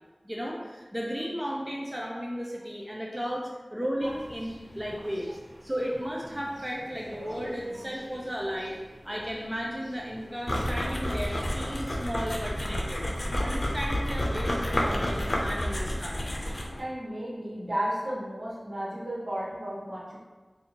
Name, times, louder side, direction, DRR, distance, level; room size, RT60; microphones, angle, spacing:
voice 1, 0.2-8.8 9.0-13.0 13.4-16.2, equal, 15° right, -3 dB, 0.5 m, -34 dB
sound 1, 4.0-11.8, equal, 40° right, 1.4 m, -48 dB
sound 2, 10.5-16.8, equal, 65° left, 0.6 m, -30 dB
voice 2, 16.8-20.2, right 1 dB, 75° right, -7 dB, 1.3 m, -34 dB
4.1 x 2.6 x 2.9 m, 1.3 s
wide cardioid pair, 55°, 0 cm